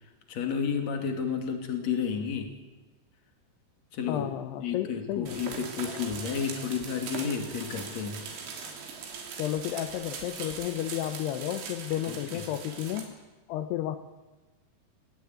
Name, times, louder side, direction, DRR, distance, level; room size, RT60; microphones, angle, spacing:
voice 1, 0.3-2.5 3.9-4.3 4.6-8.2 12.1-12.2, left 6 dB, 40° left, 4 dB, 3.1 m, -31 dB
voice 2, 4.1-5.9 9.4-13.1 13.5-14.0, left 12 dB, 75° left, 9 dB, 2.5 m, -32 dB
sound 1, 5.3-13.0, right 5 dB, 70° right, 5.3 m, -40 dB
21.5 x 17.0 x 9.6 m, 1.2 s
omnidirectional pair, 5.7 m